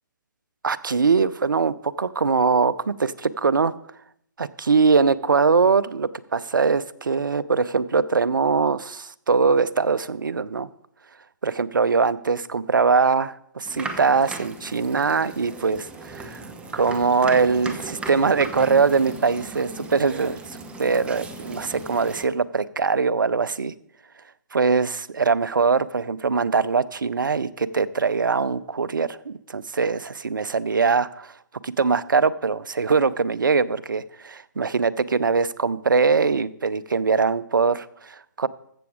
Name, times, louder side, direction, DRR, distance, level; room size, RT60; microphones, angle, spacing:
voice 1, 0.6-3.7 4.4-10.7 11.4-16.4 16.7-23.7 24.5-31.3 31.6-38.5, right 5 dB, 85° right, 17 dB, 0.6 m, -22 dB
sound 1, 13.6-22.2, right 3 dB, 10° right, 1.0 m, -37 dB
14.5 x 7.1 x 4.9 m, 0.70 s
hypercardioid pair, 140°, 10 cm